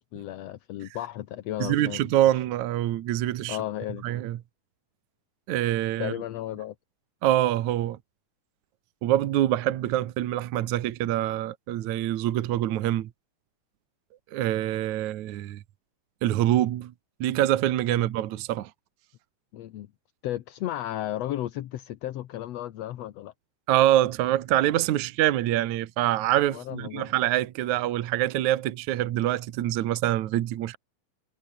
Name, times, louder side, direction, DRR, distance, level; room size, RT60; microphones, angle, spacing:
voice 1, 0.1-2.1 3.5-4.0 6.0-6.8 19.5-19.9 20.2-23.3 26.5-27.1, left 13 dB, 65° left, 1.8 m, -34 dB
voice 2, 1.6-3.6 4.0-4.4 5.5-6.1 7.2-8.0 9.0-13.1 14.3-15.6 16.2-16.9 17.2-18.7 23.7-30.8, right 13 dB, 65° right, 2.3 m, -25 dB
omnidirectional pair, 3.8 m